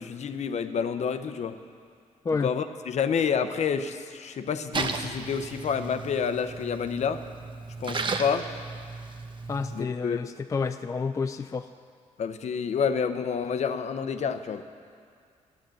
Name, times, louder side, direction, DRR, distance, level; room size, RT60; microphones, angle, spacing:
voice 1, 0.0-1.6 2.4-7.2 7.8-8.5 9.7-10.2 12.2-14.6, left 6 dB, 60° left, 9 dB, 0.7 m, -29 dB
Splash splatter, 4.7-9.8, right 4 dB, 40° right, 0.8 m, -35 dB
voice 2, 9.5-11.7, left 4 dB, 25° left, 8 dB, 0.3 m, -29 dB
13.0 x 9.9 x 7.7 m, 2.3 s
wide cardioid pair, 135°, 13 cm